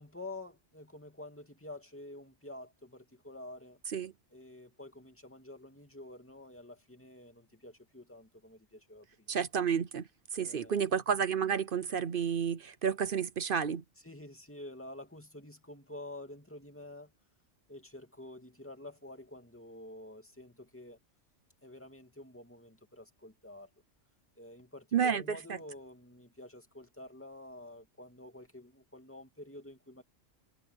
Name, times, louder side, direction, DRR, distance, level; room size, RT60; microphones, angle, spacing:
voice 1, 0.0-3.8 4.3-9.3 10.3-10.9 14.0-17.1 17.7-21.0 21.6-23.7 24.4-30.0, left 1 dB, 10° left, 2.7 m, -49 dB
voice 2, 9.3-10.1 10.3-13.8 24.9-25.4, right 7 dB, 50° right, 0.8 m, -30 dB
omnidirectional pair, 1.3 m